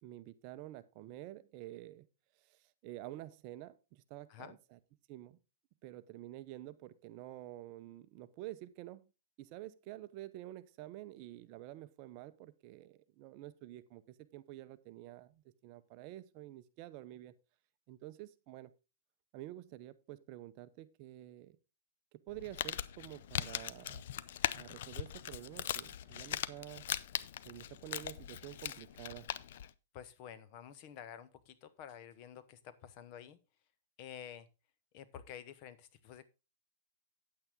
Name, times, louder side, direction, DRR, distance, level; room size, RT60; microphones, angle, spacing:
voice 1, 0.0-2.0 2.4-4.8 5.1-5.4 5.8-9.1 9.4-17.3 17.9-18.7 19.3-21.6 22.3-24.0 24.6-26.9 27.4-29.3, right 15 dB, 35° right, 13 dB, 0.7 m, -49 dB
Crumpling crinkling, 22.3-29.7, left 11 dB, 60° left, 0.5 m, -40 dB
voice 2, 29.9-33.4 34.0-34.5 34.9-36.2, left 9 dB, 35° left, 13 dB, 0.9 m, -50 dB
9.3 x 8.8 x 3.6 m, 0.29 s
hypercardioid pair, 155°, 0 cm